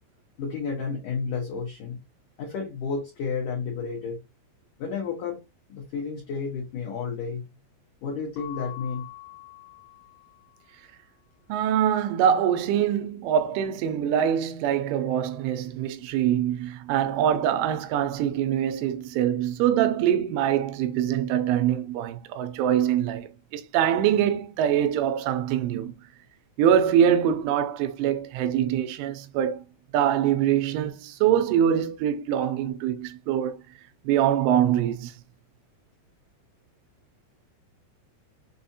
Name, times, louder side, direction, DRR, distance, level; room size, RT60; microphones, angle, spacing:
voice 1, 0.4-2.0 2.4-4.2 4.8-5.4 5.7-7.5 8.0-9.1, left 5 dB, 85° left, 1.8 m, -31 dB
Keyboard (musical) / Bell, 8.3-10.8, left 19 dB, 40° left, 0.6 m, -44 dB
voice 2, 11.5-25.9 26.6-29.6 29.9-33.6 34.0-35.1, right 9 dB, 85° right, 2.9 m, -24 dB
7.0 x 2.7 x 2.8 m
omnidirectional pair, 5.5 m